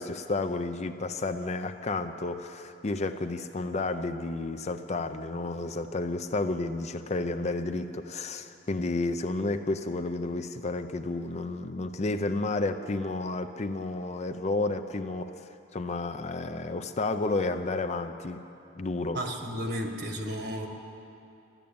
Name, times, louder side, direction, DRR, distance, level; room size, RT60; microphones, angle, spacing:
voice 1, 0.0-18.4 18.8-19.2, left 2 dB, 35° left, 8 dB, 0.5 m, -31 dB
voice 2, 19.1-20.7, equal, 60° right, 3 dB, 1.6 m, -33 dB
12.0 x 11.5 x 8.6 m, 2.7 s
head